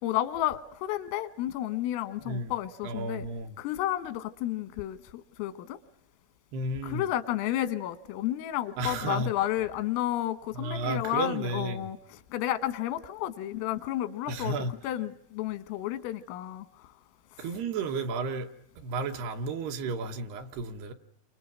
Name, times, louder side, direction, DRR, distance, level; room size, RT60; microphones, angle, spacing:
voice 1, 0.0-3.3 3.6-5.8 6.8-14.6 14.8-16.9 17.4-17.5, left 13 dB, 90° left, 3.8 m, -32 dB
voice 2, 2.8-3.6 6.5-7.0 8.8-9.3 10.5-11.9 14.3-14.7 17.4-18.5 18.8-20.9, right 3 dB, 70° right, 2.7 m, -32 dB
30.0 x 26.0 x 6.1 m
omnidirectional pair, 5.8 m